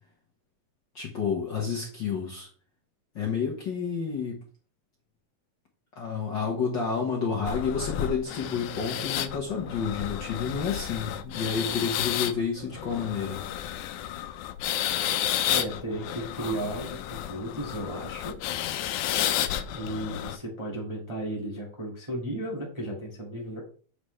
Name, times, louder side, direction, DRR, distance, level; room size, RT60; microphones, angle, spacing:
voice 1, 0.9-2.5 3.1-4.4 5.9-13.4, left 6 dB, 50° left, -1 dB, 1.5 m, -30 dB
sound 1, 7.5-20.4, left 11 dB, 85° left, 2.1 m, -32 dB
voice 2, 15.5-18.4 19.7-23.6, right 1 dB, 15° right, -2 dB, 1.3 m, -34 dB
8.2 x 6.9 x 3.3 m, 0.41 s
omnidirectional pair, 3.5 m